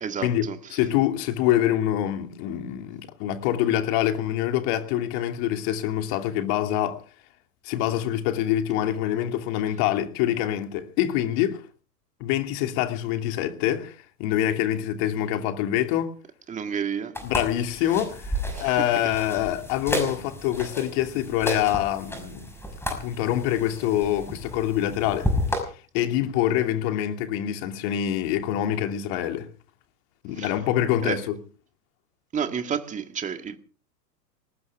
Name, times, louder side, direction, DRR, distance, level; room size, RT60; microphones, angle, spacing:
voice 1, 0.0-0.8 16.5-17.2 18.5-19.1 30.3-30.6 31.0-31.2 32.3-33.6, right 7 dB, 15° right, 1.9 m, -31 dB
voice 2, 0.7-7.0 7.6-11.6 12.2-16.1 17.2-22.5 22.9-25.3 25.9-29.5 30.2-31.4, left 12 dB, 40° left, 2.8 m, -25 dB
sound 1, 17.1-25.6, left 1 dB, 5° left, 5.8 m, -32 dB
20.5 x 19.0 x 3.6 m
figure-of-eight pair, 110°, 50 cm